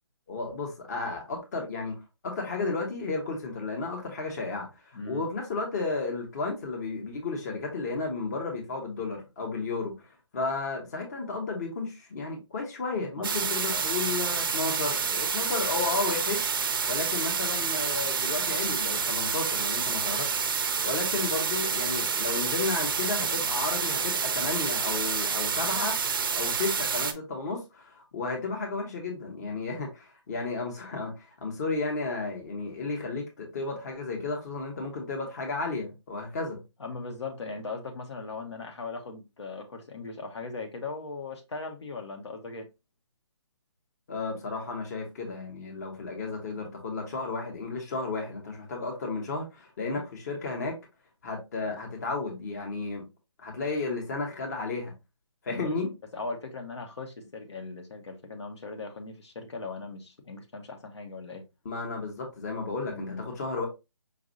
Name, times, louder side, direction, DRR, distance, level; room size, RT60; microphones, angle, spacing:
voice 1, 0.3-10.1 10.3-16.5 16.9-20.3 20.8-26.0 26.3-36.6 44.1-50.8 51.2-53.1 53.4-54.9 55.4-55.9 61.6-63.7, left 3 dB, 35° left, 1.1 m, -33 dB
voice 2, 4.9-5.3 13.2-13.8 36.8-42.7 49.8-50.0 55.5-55.7 56.1-61.4 62.9-63.2, left 3 dB, 65° left, 1.1 m, -39 dB
sound 1, 13.2-27.1, right 6 dB, 45° right, 0.5 m, -28 dB
5.2 x 2.6 x 2.6 m
hypercardioid pair, 160°, 15 cm